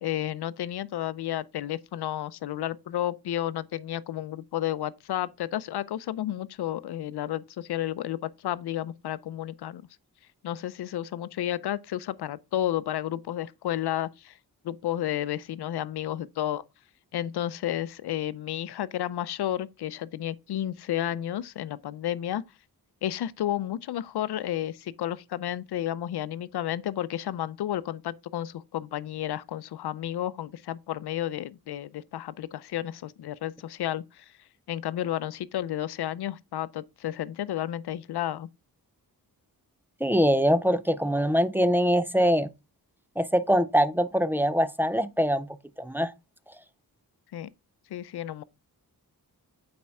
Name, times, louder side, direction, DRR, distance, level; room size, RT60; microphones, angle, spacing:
voice 1, 0.0-9.8 10.4-14.4 14.6-16.6 17.1-22.4 23.0-34.3 34.7-38.5 47.3-47.5 47.9-48.4, left 12 dB, 85° left, 0.5 m, -32 dB
voice 2, 40.0-42.5 43.2-45.5 45.8-46.1, equal, 5° right, 0.4 m, -23 dB
8.4 x 4.4 x 3.5 m
wide cardioid pair, 90°, 38 cm